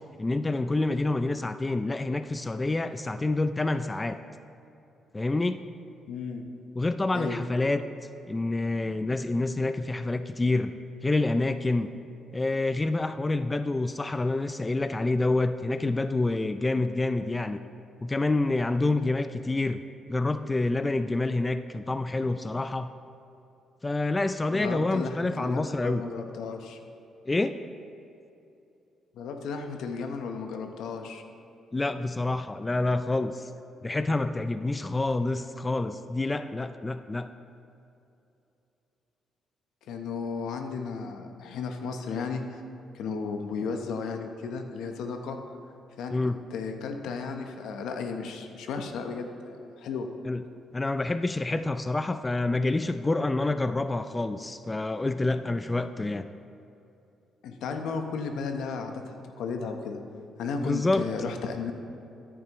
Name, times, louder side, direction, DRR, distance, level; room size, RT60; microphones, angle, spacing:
voice 1, 0.2-4.2 5.1-5.6 6.8-7.9 8.3-10.7 11.0-11.9 12.3-17.6 18.0-19.8 20.1-22.9 23.8-26.0 27.3-27.6 31.7-33.5 33.8-37.3 46.1-46.4 50.3-50.4 50.7-56.3 60.6-61.0, left 2 dB, 20° left, 10 dB, 0.4 m, -27 dB
voice 2, 6.1-6.4 7.1-7.4 24.5-26.8 29.1-31.2 39.9-42.6 42.9-45.4 46.0-46.2 46.5-50.1 57.4-60.0 60.4-61.7, left 5 dB, 80° left, 5 dB, 0.9 m, -34 dB
13.5 x 10.0 x 3.0 m, 2.8 s
cardioid pair, 90°, 0 cm